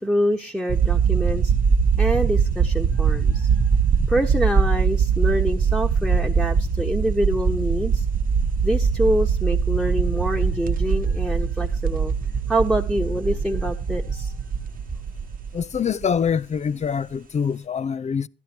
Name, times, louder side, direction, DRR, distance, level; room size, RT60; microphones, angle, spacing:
voice 1, 0.0-1.5 2.0-3.5 4.1-8.0 8.6-12.1 12.5-14.3, equal, ahead, 1.2 m, -25 dB
sound 1, 0.7-16.3, right 6 dB, 45° right, 1.0 m, -22 dB
voice 2, 15.5-18.3, left 7 dB, 35° left, 0.5 m, -25 dB
13.0 x 10.5 x 4.4 m
cardioid pair, 90°, 20 cm